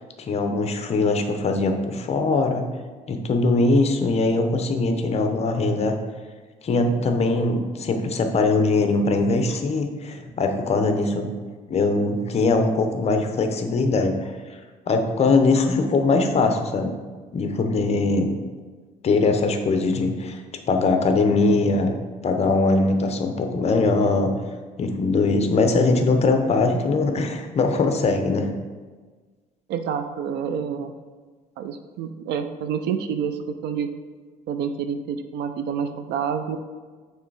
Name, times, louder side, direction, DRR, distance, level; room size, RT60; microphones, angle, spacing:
voice 1, 0.2-2.7 3.1-5.9 6.6-11.3 11.7-14.3 14.9-16.9 17.3-18.3 19.0-20.4 20.7-21.9 22.2-24.3 24.8-28.5, left 3 dB, 40° left, 5 dB, 0.7 m, -21 dB
voice 2, 29.7-30.9 31.6-33.9 34.5-36.6, right 7 dB, 75° right, 8 dB, 0.5 m, -28 dB
6.6 x 3.3 x 4.7 m, 1.4 s
cardioid pair, 110°, 17 cm